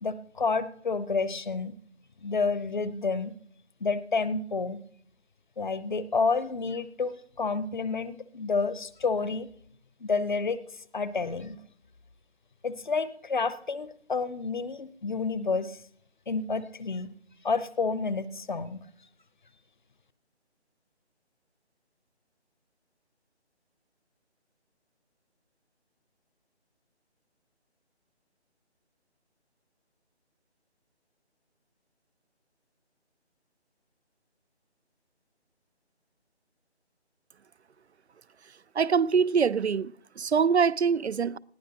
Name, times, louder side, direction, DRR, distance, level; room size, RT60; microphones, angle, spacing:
voice 1, 0.0-1.7 2.2-3.3 3.8-4.8 5.6-9.5 10.0-10.6 10.9-11.6 12.6-15.8 16.3-17.1 17.4-18.8, left 4 dB, 45° left, 0.8 m, -29 dB
voice 2, 38.8-41.4, right 6 dB, 70° right, 0.6 m, -24 dB
20.0 x 15.0 x 3.0 m
figure-of-eight pair, 155°, 34 cm